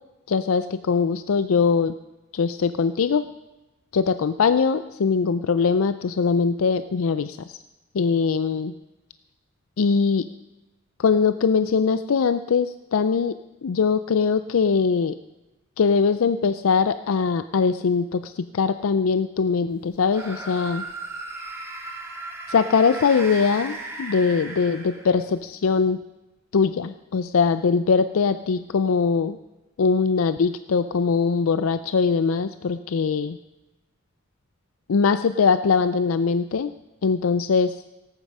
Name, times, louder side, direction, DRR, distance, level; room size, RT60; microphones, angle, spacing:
voice 1, 0.3-1.9 2.3-3.2 3.9-7.6 7.9-8.7 9.8-10.2 11.0-13.3 13.6-15.1 15.8-20.8 22.5-26.0 26.5-29.4 29.8-33.4 34.9-36.7 37.0-37.8, left 5 dB, 85° left, 12 dB, 0.4 m, -21 dB
sound 1, 20.1-25.3, right 2 dB, 15° right, 2.1 m, -36 dB
18.5 x 9.0 x 5.4 m, 1.0 s
head